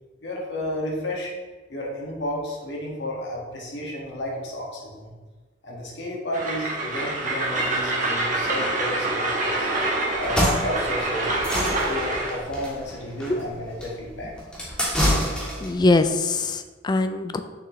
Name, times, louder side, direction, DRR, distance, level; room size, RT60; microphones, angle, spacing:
voice 1, 0.2-1.3 1.7-5.1 5.6-9.7 10.1-11.3 11.8-14.3, left 1 dB, 65° left, -3 dB, 1.8 m, -32 dB
Train, 6.3-12.4, right 2 dB, 40° right, 1.3 m, -26 dB
sound 1, 10.1-15.8, equal, 5° left, 1.6 m, -27 dB
voice 2, 15.6-17.4, left 2 dB, 20° left, 9 dB, 0.4 m, -22 dB
6.9 x 6.2 x 3.1 m, 1.3 s
head